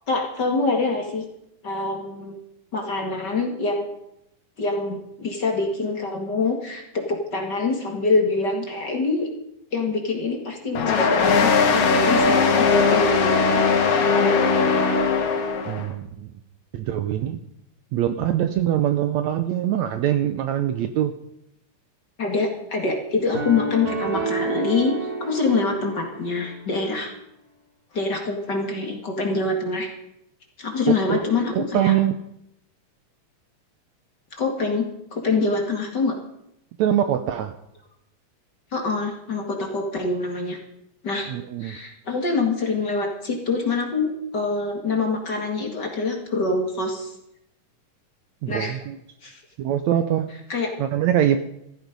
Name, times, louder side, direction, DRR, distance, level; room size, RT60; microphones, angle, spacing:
voice 1, 0.1-1.3 1.6-2.4 2.7-3.9 4.6-9.3 9.7-13.6 14.1-14.4 22.2-24.9 25.2-27.1 27.9-29.9 30.6-31.9 34.3-34.8 35.1-36.2 38.7-40.6 41.0-41.3 41.6-47.1 48.5-48.8 49.2-49.3 50.5-50.7, left 3 dB, 35° left, 2 dB, 2.4 m, -25 dB
sound 1, 10.8-15.9, left 4 dB, 85° left, 3.5 m, -19 dB
voice 2, 15.7-16.3 16.7-17.4 17.9-21.1 30.9-31.2 31.6-32.2 36.8-37.5 41.3-41.8 48.4-49.0 49.6-50.3 50.8-51.4, right 11 dB, 70° right, 9 dB, 1.8 m, -23 dB
sound 2, 23.3-26.6, right 3 dB, 90° right, 4.5 m, -29 dB
15.0 x 14.5 x 5.3 m, 0.79 s
omnidirectional pair, 3.7 m